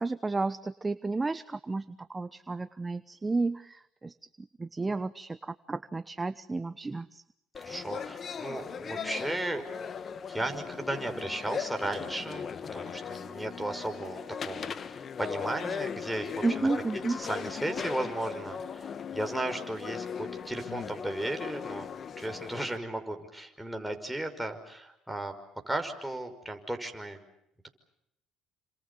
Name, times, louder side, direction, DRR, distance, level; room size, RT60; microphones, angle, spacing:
voice 1, 0.0-7.2 16.4-17.2, right 3 dB, 20° right, 14 dB, 1.0 m, -32 dB
sound 1, 7.5-22.8, left 7 dB, 45° left, 1.3 m, -38 dB
voice 2, 7.6-9.6 10.3-16.7 16.9-21.9 22.2-25.3 25.7-27.2, right 1 dB, 5° right, 4 dB, 5.5 m, -35 dB
29.0 x 26.5 x 7.0 m, 0.78 s
supercardioid pair, 80°, 0 cm